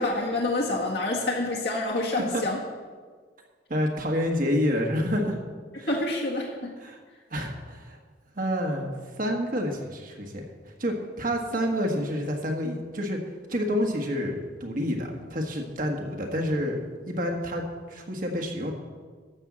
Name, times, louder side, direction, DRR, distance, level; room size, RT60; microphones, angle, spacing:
voice 1, 0.0-2.6 5.9-6.7, left 2 dB, 65° left, -3 dB, 1.7 m, -27 dB
voice 2, 3.7-5.4 5.8-6.0 6.8-7.0 7.3-8.0 8.3-10.4 10.8-13.2 13.5-18.7, equal, 50° right, 2 dB, 1.5 m, -28 dB
12.5 x 5.5 x 7.4 m, 1.5 s
head